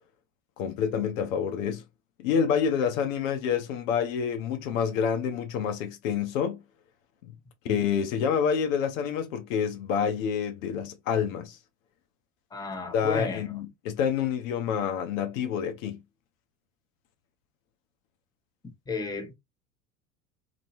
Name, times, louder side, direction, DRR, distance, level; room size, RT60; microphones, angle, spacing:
voice 1, 0.6-1.8 2.2-6.6 7.3-7.4 7.6-11.6 12.9-16.0, left 7 dB, 65° left, 0.8 m, -28 dB
voice 2, 12.5-13.4 18.6-19.3, left 4 dB, 10° left, 0.9 m, -33 dB
3.0 x 2.7 x 2.5 m
figure-of-eight pair, 75°, 42 cm